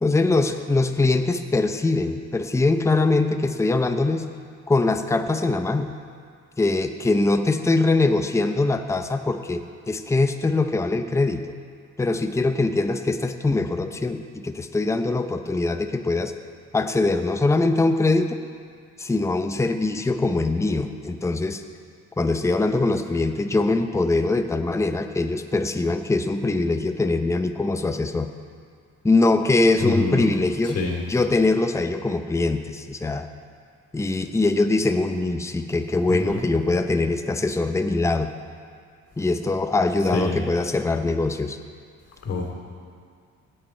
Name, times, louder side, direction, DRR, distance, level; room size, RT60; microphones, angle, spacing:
voice 1, 0.0-4.3 4.7-5.9 6.6-11.4 12.0-16.3 16.7-18.4 19.0-21.6 22.2-28.3 29.0-30.8 31.1-33.3 33.9-38.3 39.2-41.6, left 2 dB, 10° left, 7 dB, 0.6 m, -22 dB
voice 2, 29.8-30.3 30.6-31.0 36.1-36.4 40.1-40.4 42.2-42.5, left 3 dB, 55° left, 1 dB, 2.8 m, -26 dB
16.0 x 8.8 x 4.4 m, 2.1 s
cardioid pair, 90°, 30 cm